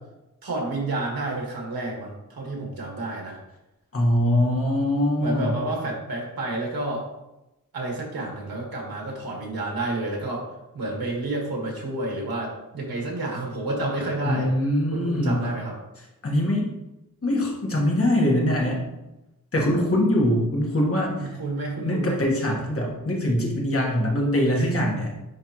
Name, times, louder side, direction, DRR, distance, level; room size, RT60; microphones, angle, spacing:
voice 1, 0.4-3.4 5.2-7.1 7.7-10.4 10.7-14.5 14.9-15.8 21.2-22.2, right 2 dB, 90° right, -2 dB, 1.8 m, -30 dB
voice 2, 3.9-5.6 14.2-15.5 16.2-16.7 17.2-18.8 19.5-21.3 21.8-25.1, left 1 dB, 40° left, -2 dB, 1.5 m, -23 dB
9.8 x 3.4 x 3.0 m, 0.96 s
wide cardioid pair, 150°, 35 cm